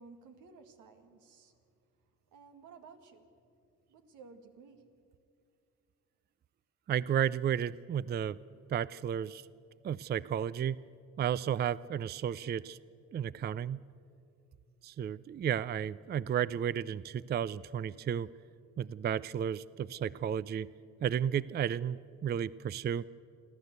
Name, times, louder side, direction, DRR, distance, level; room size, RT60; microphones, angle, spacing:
voice 1, 0.0-1.5 2.3-3.3 3.9-5.0, right 4 dB, 85° right, 6 dB, 2.0 m, -55 dB
voice 2, 6.9-8.4 8.7-9.4 9.8-10.8 11.2-12.8 13.1-13.8 14.8-18.3 18.8-20.7 21.0-23.1, right 9 dB, 35° right, 19 dB, 0.4 m, -33 dB
30.0 x 11.5 x 8.1 m, 2.5 s
cardioid pair, 90°, 30 cm